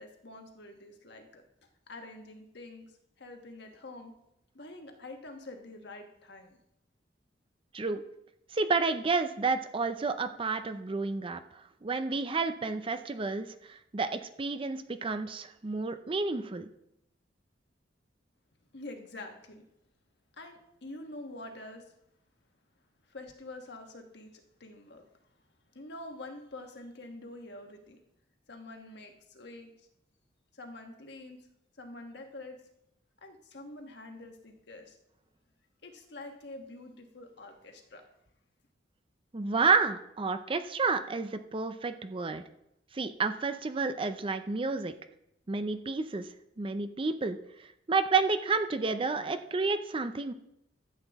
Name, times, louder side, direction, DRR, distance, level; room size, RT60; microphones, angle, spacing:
voice 1, 0.0-1.4 1.9-4.1 4.5-6.6 18.7-19.6 20.4-21.9 23.1-25.0 25.7-28.0 28.5-29.9 30.5-31.5 31.8-32.6 33.2-35.0 35.8-38.0, left 2 dB, 65° left, 4 dB, 1.3 m, -46 dB
voice 2, 8.5-11.4 11.8-16.7 39.3-42.4 42.9-44.9 45.5-46.3 46.6-47.4 47.9-50.3, right 4 dB, 30° right, 10 dB, 0.5 m, -30 dB
13.0 x 7.9 x 3.5 m, 0.79 s
head